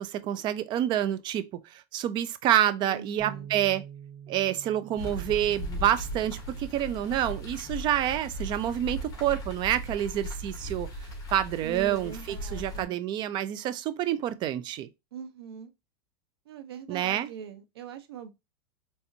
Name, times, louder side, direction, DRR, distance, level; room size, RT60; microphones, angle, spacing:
voice 1, 0.0-3.8 4.3-10.9 11.3-14.9 16.9-17.3, right 11 dB, 35° right, 0.5 m, -28 dB
voice 2, 2.6-3.5 11.6-13.0 15.1-15.7 16.5-18.3, right 7 dB, 90° right, 0.9 m, -42 dB
Bass guitar, 3.2-9.4, right 8 dB, 55° right, 2.2 m, -49 dB
sound 1, 5.0-12.9, equal, 30° left, 1.9 m, -38 dB
4.2 x 3.4 x 2.7 m
supercardioid pair, 135°, 13 cm